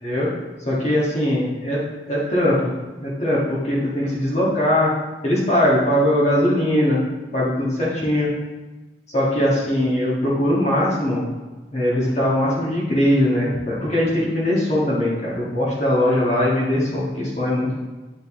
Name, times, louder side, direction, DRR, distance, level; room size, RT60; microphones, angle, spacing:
voice 1, 0.6-1.8 2.1-2.7 3.0-4.9 5.2-7.0 7.3-8.3 9.1-11.2 11.7-17.8, left 1 dB, 40° left, -7 dB, 1.6 m, -20 dB
9.1 x 4.0 x 3.7 m, 1.2 s
head